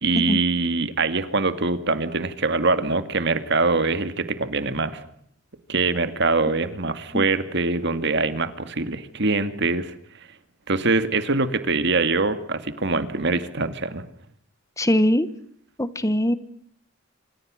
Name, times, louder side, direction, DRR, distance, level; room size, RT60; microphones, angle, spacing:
voice 1, 0.0-5.0 5.7-9.9 10.7-14.0, right 3 dB, 55° right, 11 dB, 2.2 m, -23 dB
voice 2, 14.8-15.3 15.8-16.4, equal, 15° left, 14 dB, 1.1 m, -21 dB
27.0 x 25.5 x 6.4 m, 0.68 s
head